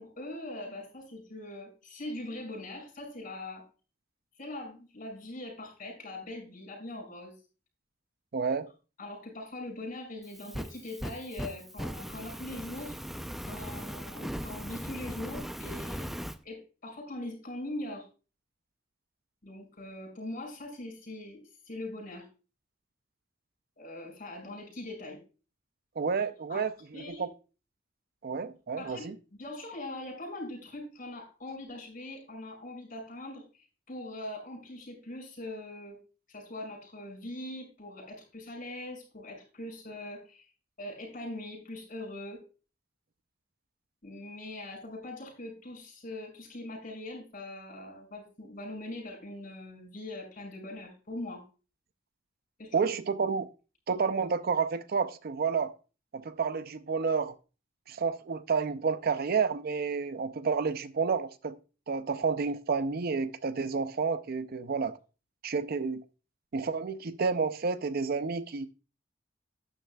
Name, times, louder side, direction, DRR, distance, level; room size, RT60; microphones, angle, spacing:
voice 1, 0.0-3.6 4.4-7.3 9.0-13.0 13.4-16.1 16.4-18.1 19.4-22.3 23.8-25.2 26.5-27.3 28.8-29.1 29.4-33.4 33.9-36.0 36.3-40.4 40.8-42.4 44.0-51.4 52.6-52.9, left 1 dB, 45° left, 6.1 m, -41 dB
voice 2, 8.3-8.7 26.0-27.3 28.2-29.2 52.7-53.5 53.9-55.7 56.1-57.3 57.9-61.6 61.9-65.0 65.4-66.0 66.5-68.7, right 5 dB, 50° right, 0.5 m, -30 dB
Fire, 10.2-16.4, equal, ahead, 0.5 m, -39 dB
11.5 x 10.0 x 2.3 m
head